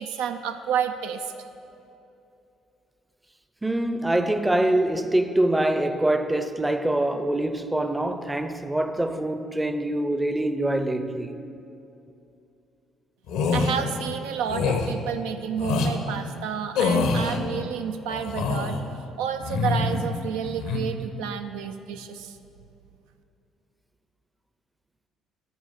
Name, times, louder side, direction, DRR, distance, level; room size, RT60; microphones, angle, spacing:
voice 1, 0.0-1.3 13.5-22.4, right 8 dB, 75° right, 0.4 m, -30 dB
voice 2, 3.6-11.4, right 1 dB, 10° right, 0.6 m, -24 dB
sound 1, 13.3-13.7 14.5-14.9 15.6-15.9 16.7-17.4 18.1-18.8 19.4-20.1 20.4-20.8, left 4 dB, 75° left, 0.9 m, -25 dB
13.0 x 4.7 x 5.7 m
hypercardioid pair, 50°, 0 cm